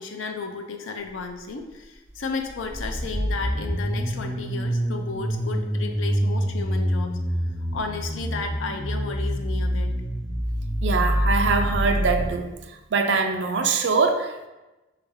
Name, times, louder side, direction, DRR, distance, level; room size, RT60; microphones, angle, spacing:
voice 1, 0.0-7.1 7.7-10.0, left 4 dB, 80° left, 5 dB, 0.5 m, -33 dB
sound 1, 2.5-12.3, equal, 10° left, 0.3 m, -26 dB
voice 2, 10.8-12.5 12.9-14.5, right 4 dB, 65° right, 5 dB, 0.4 m, -23 dB
3.4 x 3.3 x 3.5 m, 1.1 s
head